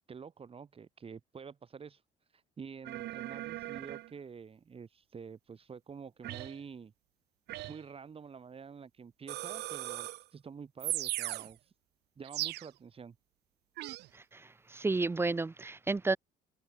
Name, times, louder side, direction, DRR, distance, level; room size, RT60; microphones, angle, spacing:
voice 1, 0.1-2.0 2.3-6.9 7.7-11.7 12.2-13.1, right 6 dB, 35° right, 6.7 m, -48 dB
sound 1, 2.8-4.1 6.2-6.6 7.5-7.8 9.3-10.3 10.8-11.5 12.2-12.7 13.8-14.1, right 17 dB, 80° right, 2.0 m, -38 dB
voice 2, 14.1-16.2, right 3 dB, 15° right, 0.6 m, -32 dB
cardioid pair, 110°, 17 cm